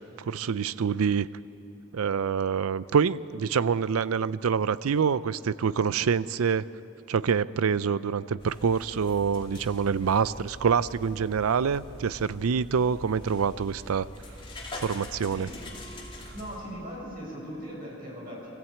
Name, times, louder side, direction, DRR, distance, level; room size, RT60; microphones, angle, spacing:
voice 1, 0.2-1.3 1.9-6.7 7.1-14.1 14.7-15.5, right 6 dB, 85° right, 17 dB, 0.5 m, -26 dB
sound 1, 8.4-16.6, left 1 dB, 25° left, 2.6 m, -44 dB
voice 2, 15.2-15.6 16.3-18.5, equal, 45° right, -4 dB, 6.7 m, -40 dB
23.5 x 14.5 x 8.5 m, 3.0 s
head